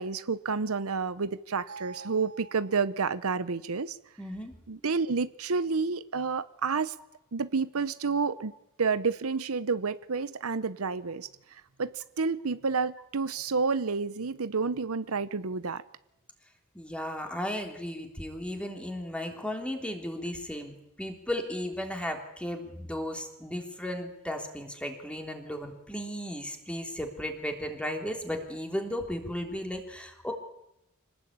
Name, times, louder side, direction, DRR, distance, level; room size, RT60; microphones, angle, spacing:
voice 1, 0.0-4.0 4.7-6.9 7.3-8.5 8.8-15.8, right 4 dB, 75° right, 0.8 m, -30 dB
voice 2, 4.2-4.5 16.7-30.3, left 1 dB, 5° left, 3.4 m, -35 dB
25.5 x 19.0 x 8.8 m
head